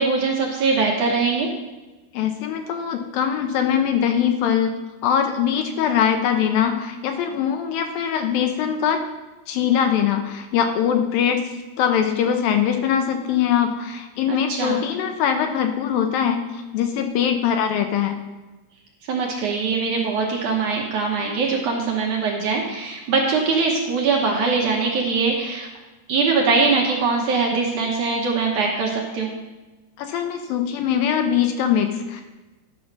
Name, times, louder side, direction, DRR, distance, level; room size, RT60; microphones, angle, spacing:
voice 1, 0.0-1.5 14.3-14.8 19.1-25.7 26.1-29.3, right 4 dB, 65° right, -1 dB, 2.1 m, -22 dB
voice 2, 2.1-4.8 5.0-9.0 9.5-18.2 30.0-32.2, left 8 dB, 75° left, 5 dB, 2.3 m, -22 dB
12.0 x 5.4 x 5.9 m, 1.2 s
omnidirectional pair, 4.5 m